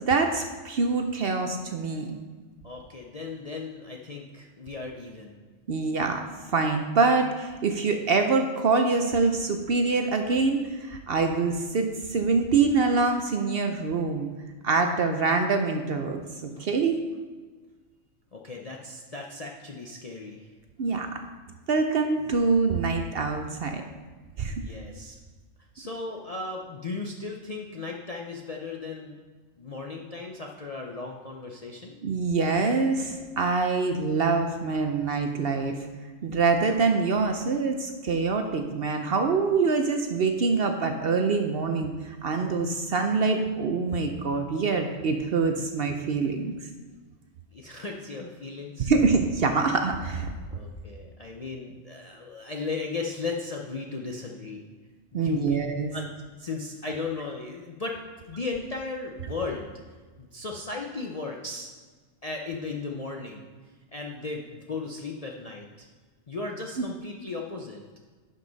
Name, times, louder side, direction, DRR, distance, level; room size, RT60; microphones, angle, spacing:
voice 1, 0.0-2.2 5.7-14.3 14.6-17.0 20.8-21.2 21.7-23.8 24.4-24.5 32.0-35.8 36.2-46.5 48.8-50.3 55.1-55.9, right 4 dB, 55° right, 5 dB, 0.7 m, -25 dB
voice 2, 2.6-5.3 18.3-20.5 24.6-25.2 25.7-29.2 29.6-32.0 47.5-48.9 50.5-54.6 55.1-55.6 55.9-56.1 56.4-58.0 58.3-59.7 60.2-61.7 62.2-63.5 63.9-65.9 66.3-67.8, left 3 dB, 45° left, 0 dB, 0.5 m, -36 dB
11.0 x 5.4 x 4.0 m, 1.4 s
omnidirectional pair, 1.4 m